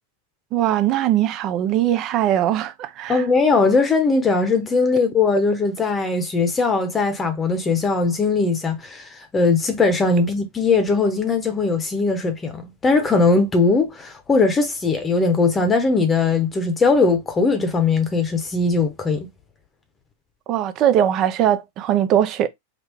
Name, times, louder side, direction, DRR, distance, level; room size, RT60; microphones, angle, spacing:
voice 1, 0.5-3.2 20.5-22.5, right 11 dB, 40° right, 0.6 m, -20 dB
voice 2, 3.1-19.3, left 3 dB, 20° left, 0.9 m, -20 dB
3.6 x 2.2 x 3.4 m
hypercardioid pair, 105°, 0 cm